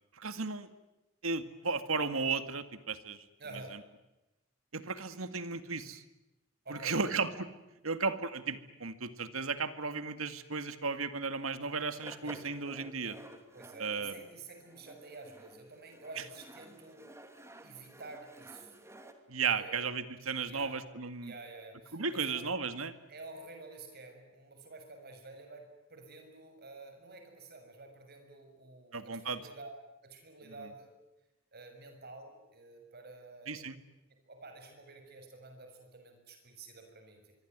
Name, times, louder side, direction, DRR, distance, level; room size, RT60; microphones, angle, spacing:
voice 1, 0.2-0.7 1.2-3.2 4.7-6.0 6.7-7.5 7.8-13.2 13.8-14.1 19.3-21.3 21.9-22.9 28.9-29.4 33.5-33.8, right 4 dB, 90° right, 11 dB, 2.0 m, -35 dB
voice 2, 3.4-3.8 6.6-7.2 12.2-12.4 13.5-17.0 17.6-18.7 19.5-19.8 20.4-20.8 21.2-22.4 23.1-29.7 30.0-30.9 31.5-33.6 34.3-37.3, right 3 dB, 50° right, 5 dB, 6.9 m, -50 dB
sound 1, 11.3-11.4 11.8-19.1, right 1 dB, 15° right, 2.8 m, -53 dB
25.5 x 24.0 x 9.4 m, 0.99 s
head